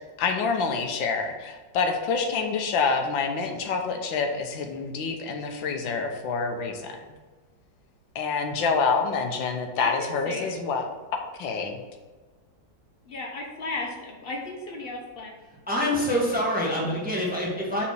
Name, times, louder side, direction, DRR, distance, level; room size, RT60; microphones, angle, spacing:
voice 1, 0.2-7.0 8.1-11.8, left 4 dB, 85° left, 4 dB, 1.6 m, -27 dB
voice 2, 9.8-10.5 13.0-15.3 15.7-16.3 16.6-16.7, left 2 dB, 35° left, 0 dB, 1.2 m, -35 dB
voice 3, 15.7-17.8, equal, 5° right, -4 dB, 1.2 m, -25 dB
5.8 x 4.1 x 6.3 m, 1.3 s
omnidirectional pair, 2.0 m